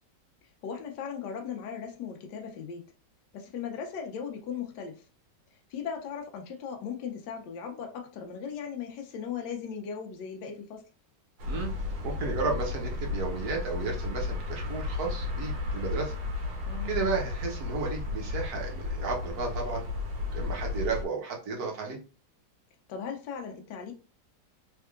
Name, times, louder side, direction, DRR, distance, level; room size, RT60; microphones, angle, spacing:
voice 1, 0.6-2.8 3.3-5.0 5.7-10.9 16.7-16.9 22.9-23.9, left 7 dB, 70° left, 1.3 m, -38 dB
sound 1, 11.4-21.0, left 3 dB, 75° right, 1.6 m, -33 dB
voice 2, 12.0-16.1 16.8-19.9 20.2-22.0, right 4 dB, 60° right, 1.4 m, -33 dB
3.6 x 3.4 x 2.4 m
omnidirectional pair, 2.0 m